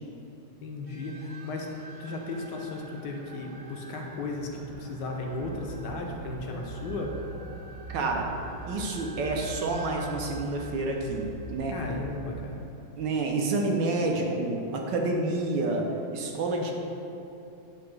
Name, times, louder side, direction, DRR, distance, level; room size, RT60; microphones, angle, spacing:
voice 1, 0.6-1.7 2.0-7.1 11.7-12.6, left 2 dB, 65° left, 1 dB, 1.2 m, -35 dB
sound 1, 0.9-12.1, right 3 dB, 90° right, 0.8 m, -47 dB
sound 2, 5.3-12.4, right 3 dB, 10° right, 0.6 m, -42 dB
voice 2, 7.9-8.3 8.7-11.8 13.0-16.7, right 2 dB, 70° right, 1 dB, 1.2 m, -29 dB
8.3 x 2.8 x 6.0 m, 2.9 s
omnidirectional pair, 2.3 m